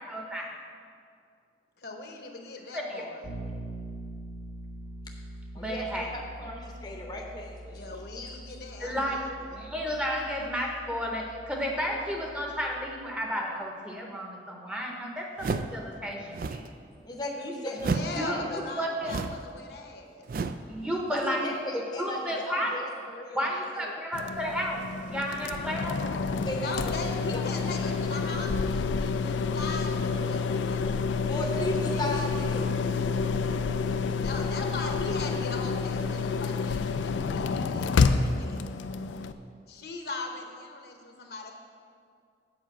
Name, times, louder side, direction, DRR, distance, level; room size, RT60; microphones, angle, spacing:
voice 1, 0.1-0.5 2.7-2.8 5.6-6.1 8.8-9.2 9.5-16.6 18.1-18.4 18.8-19.1 20.7-21.4 22.0-22.8 23.3-26.0, equal, 5° right, 0 dB, 0.8 m, -32 dB
voice 2, 1.8-3.3 7.7-9.7 17.8-20.3 26.5-30.9 31.2-32.5 34.2-38.7 39.7-41.5, left 3 dB, 60° left, 3 dB, 0.9 m, -39 dB
Bass guitar, 3.2-13.1, right 1 dB, 80° right, 1.7 m, -44 dB
voice 3, 5.5-8.4 17.0-18.6 21.1-24.0 26.4-26.9 27.3-28.3 31.3-32.7, left 1 dB, 25° left, 0 dB, 0.7 m, -37 dB
sound 1, 15.4-15.8 16.3-16.7 17.8-18.2 19.0-19.5 20.3-20.7, right 4 dB, 50° right, 0.3 m, -31 dB
sound 2, 24.1-39.3, left 4 dB, 90° left, 0.4 m, -29 dB
7.9 x 5.0 x 7.3 m, 2.3 s
head